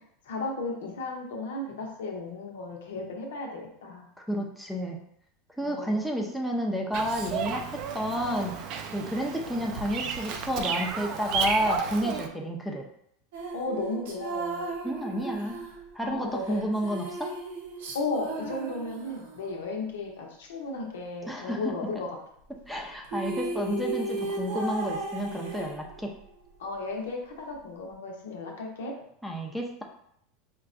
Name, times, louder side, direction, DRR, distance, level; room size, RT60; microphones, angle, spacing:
voice 1, 0.2-4.1 5.6-6.1 9.0-9.1 13.5-14.7 16.0-16.6 17.9-22.1 22.7-22.9 26.6-28.9, left 3 dB, 90° left, 0 dB, 0.8 m, -35 dB
voice 2, 4.3-5.0 5.6-8.6 8.9-12.9 14.8-15.6 15.9-17.3 21.3-21.7 22.5-26.2 29.2-29.8, equal, ahead, 1 dB, 0.5 m, -30 dB
Bird vocalization bird call bird song, 6.9-12.3, right 6 dB, 50° right, 0.4 m, -33 dB
sound 1, 13.3-19.5 22.8-22.9 23.0-26.2, right 3 dB, 75° right, 0.8 m, -36 dB
4.5 x 2.2 x 2.5 m, 0.70 s
supercardioid pair, 115°, 0 cm